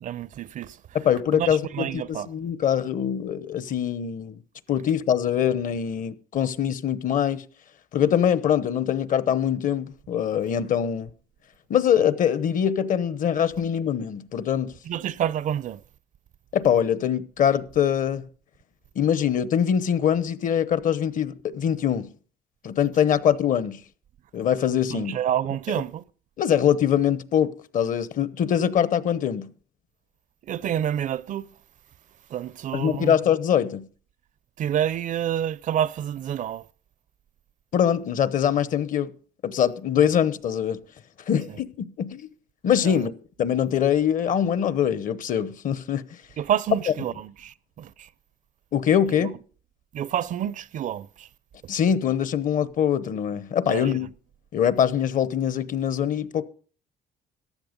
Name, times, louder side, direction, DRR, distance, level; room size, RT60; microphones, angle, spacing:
voice 1, 0.0-0.8 1.3-2.3 14.8-15.8 24.9-26.0 30.5-31.5 32.3-33.1 34.6-36.7 41.5-41.6 42.8-43.0 46.4-48.1 49.2-49.3 49.9-51.3 53.7-54.0, right 10 dB, 50° right, 0.5 m, -28 dB
voice 2, 0.9-4.4 4.7-7.4 7.9-11.1 11.7-14.7 16.5-18.3 19.0-22.1 22.6-23.8 24.3-25.2 26.4-29.5 32.7-33.9 37.7-39.1 39.4-40.8 41.3-42.3 42.6-43.1 43.4-46.1 48.7-49.3 51.7-54.1 54.5-56.4, left 9 dB, 50° left, 1.0 m, -23 dB
14.5 x 10.5 x 5.2 m
cardioid pair, 110°, 17 cm